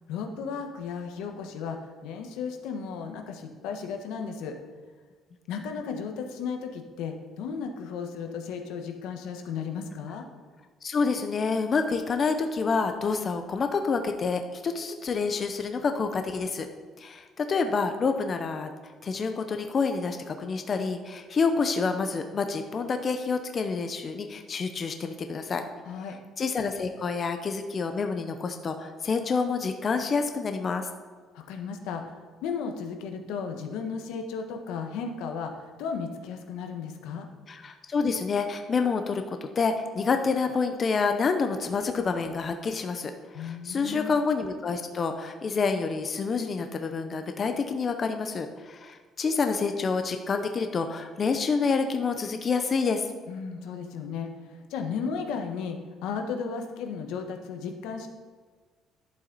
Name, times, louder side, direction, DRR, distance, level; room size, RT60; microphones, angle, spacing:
voice 1, 0.1-4.5 5.5-10.2 25.8-26.2 31.3-37.3 43.3-44.1 53.3-54.3 54.7-58.1, left 6 dB, 90° left, 5 dB, 1.2 m, -35 dB
voice 2, 10.8-16.7 17.0-18.7 19.0-25.6 26.4-30.9 37.5-53.1, left 4 dB, 25° left, 6 dB, 0.5 m, -28 dB
11.5 x 7.2 x 4.0 m, 1.5 s
cardioid pair, 180°, 0 cm